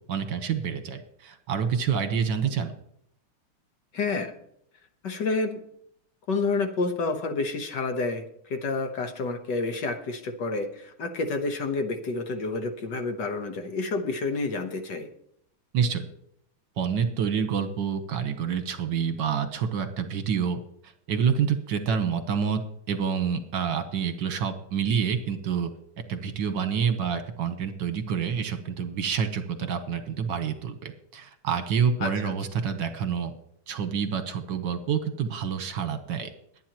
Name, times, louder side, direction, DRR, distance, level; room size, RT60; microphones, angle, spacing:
voice 1, 0.1-2.7 15.7-16.0 16.8-22.6 22.9-25.7 26.1-33.3 33.7-36.3, right 7 dB, 65° right, 9 dB, 1.7 m, -28 dB
voice 2, 3.9-4.3 5.0-5.6 6.3-8.3 8.5-15.1 32.0-32.3, left 3 dB, 60° left, 6 dB, 1.7 m, -29 dB
21.5 x 9.3 x 3.0 m, 0.70 s
omnidirectional pair, 2.3 m